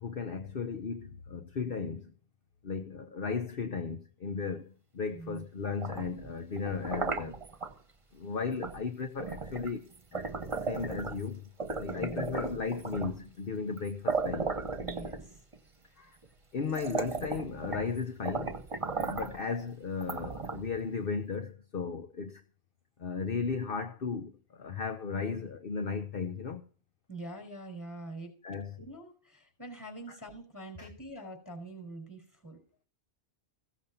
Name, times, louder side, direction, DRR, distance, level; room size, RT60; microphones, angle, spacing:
voice 1, 0.0-2.1 2.6-7.4 8.1-10.3 10.6-11.5 11.8-14.5 16.0-16.2 16.5-18.6 18.9-22.4 23.0-26.6 28.4-28.7 30.1-30.2 30.8-30.9, left 5 dB, 55° left, 1.1 m, -35 dB
voice 2, 5.1-5.5 11.9-12.4 14.8-15.4 27.1-28.3 28.8-32.6, right 2 dB, 15° left, 4.9 m, -44 dB
sound 1, 5.6-7.7 8.6-8.8 9.2-11.3 11.6-13.2 13.8-13.9 14.1-15.6 16.2-16.3 16.7-17.9 18.2-19.4 20.0-20.8, right 4 dB, 30° right, 1.1 m, -35 dB
16.0 x 7.2 x 7.0 m
omnidirectional pair, 1.1 m